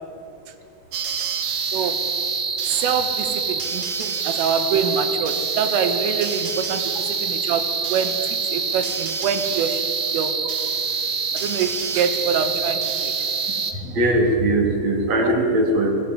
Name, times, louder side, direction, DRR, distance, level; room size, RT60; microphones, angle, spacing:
sound 1, 0.9-13.7, right 5 dB, 55° right, 2.2 m, -26 dB
voice 1, 2.7-6.8 7.1-7.6 7.9-8.1 8.5-9.8 10.1-10.3 11.3-13.1 15.2-15.4, right 6 dB, 90° right, 8 dB, 4.4 m, -25 dB
voice 2, 13.8-15.9, right 1 dB, 35° right, 2 dB, 4.3 m, -20 dB
29.5 x 21.0 x 8.2 m, 2.8 s
omnidirectional pair, 5.6 m